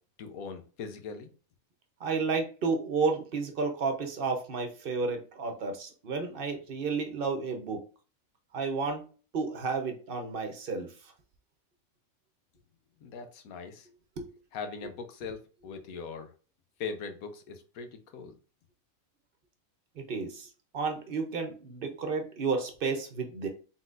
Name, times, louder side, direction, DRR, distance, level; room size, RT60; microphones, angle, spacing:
voice 1, 0.2-1.3 13.0-13.9 14.5-15.4 15.6-16.3 16.8-17.9 18.1-18.3, left 5 dB, 85° left, 7 dB, 1.2 m, -40 dB
voice 2, 2.0-7.9 8.5-9.1 9.3-10.9 14.2-14.3 14.8-14.9 20.0-20.5 20.7-23.5, right 4 dB, 50° right, 5 dB, 0.8 m, -31 dB
4.1 x 3.9 x 2.4 m, 0.36 s
omnidirectional pair, 1.5 m